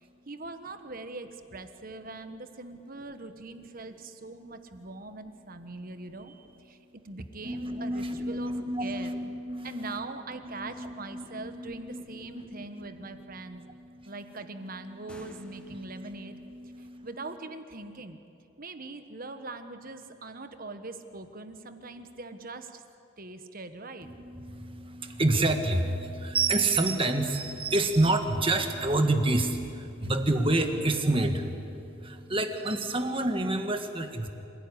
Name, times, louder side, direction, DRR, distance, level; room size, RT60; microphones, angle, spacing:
voice 1, 0.0-8.5 8.8-9.1 9.6-13.6 14.0-16.4 16.8-18.2 18.6-22.8 23.2-24.1, right 3 dB, 40° right, 8 dB, 1.3 m, -42 dB
voice 2, 7.4-17.4 24.0-34.3, right 2 dB, 25° right, 6 dB, 1.6 m, -29 dB
sound 1, 14.9-16.2, equal, 5° left, 1.5 m, -53 dB
27.0 x 16.5 x 10.0 m, 2.7 s
head